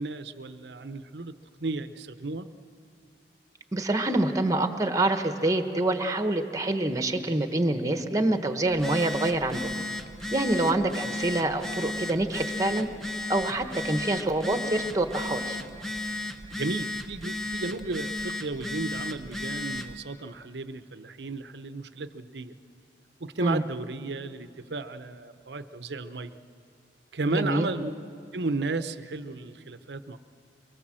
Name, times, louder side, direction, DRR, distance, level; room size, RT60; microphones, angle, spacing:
voice 1, 0.0-2.5 16.5-22.5 23.2-26.4 27.1-27.9 28.3-30.2, right 3 dB, 70° right, 11 dB, 0.8 m, -33 dB
voice 2, 3.7-9.7 10.3-12.9 13.3-15.6 23.4-23.6 27.3-27.7, right 2 dB, 20° right, 7 dB, 1.2 m, -26 dB
Telephone, 8.7-20.0, left 2 dB, ahead, 1.0 m, -34 dB
24.0 x 23.0 x 7.6 m, 2.5 s
head